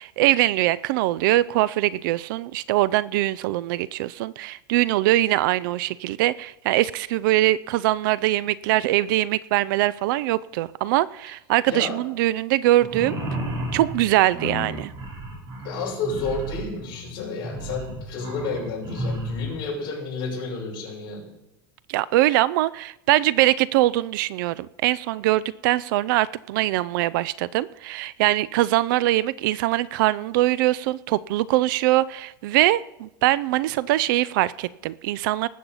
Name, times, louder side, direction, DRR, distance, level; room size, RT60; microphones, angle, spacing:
voice 1, 0.0-13.2 13.7-14.9 21.9-35.5, right 16 dB, 65° right, 21 dB, 0.4 m, -22 dB
voice 2, 11.7-12.0 15.6-21.3, left 4 dB, 40° left, -3 dB, 6.3 m, -31 dB
sound 1, 12.8-19.6, right 1 dB, 30° right, 3.5 m, -32 dB
19.5 x 7.7 x 5.6 m, 0.93 s
supercardioid pair, 155°, 12 cm